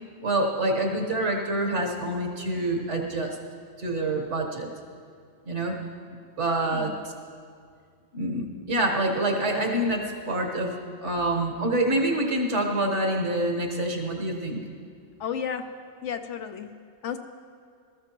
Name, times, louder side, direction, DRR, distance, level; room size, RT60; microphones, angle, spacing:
voice 1, 0.2-3.4 3.8-4.7 5.4-5.8 6.4-6.9 8.1-14.6, right 1 dB, 60° right, 1 dB, 1.7 m, -26 dB
voice 2, 6.6-6.9 15.2-15.7 16.0-16.7 17.0-17.2, left 8 dB, 65° left, 8 dB, 0.9 m, -33 dB
20.0 x 14.0 x 3.0 m, 2.2 s
omnidirectional pair, 1.4 m